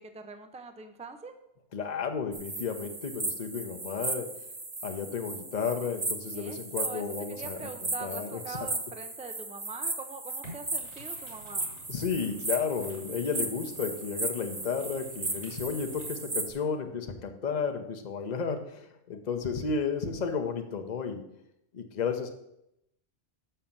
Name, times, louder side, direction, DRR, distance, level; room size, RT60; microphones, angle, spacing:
voice 1, 0.0-1.3 6.3-11.7, right 4 dB, 10° right, 8 dB, 0.4 m, -43 dB
voice 2, 1.7-4.4 4.8-7.6 8.0-8.6 11.9-21.2 21.7-22.3, left 5 dB, 40° left, 5 dB, 0.9 m, -33 dB
sound 1, 2.3-16.5, right 2 dB, 25° right, 0.9 m, -36 dB
sound 2, 10.4-16.1, equal, 75° right, 3.8 m, -52 dB
6.5 x 5.6 x 7.2 m, 0.82 s
omnidirectional pair, 1.2 m